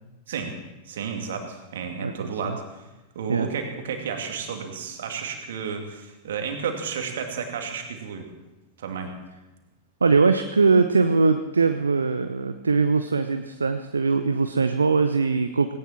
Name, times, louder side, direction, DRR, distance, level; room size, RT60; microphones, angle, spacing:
voice 1, 0.9-2.8 3.1-8.3 8.8-9.1, right 6 dB, 60° right, 4 dB, 2.7 m, -32 dB
voice 2, 2.0-2.6 3.3-3.5 10.0-15.7, right 4 dB, 75° right, 8 dB, 0.8 m, -21 dB
18.0 x 17.5 x 4.5 m, 1.0 s
figure-of-eight pair, 90°, 0 cm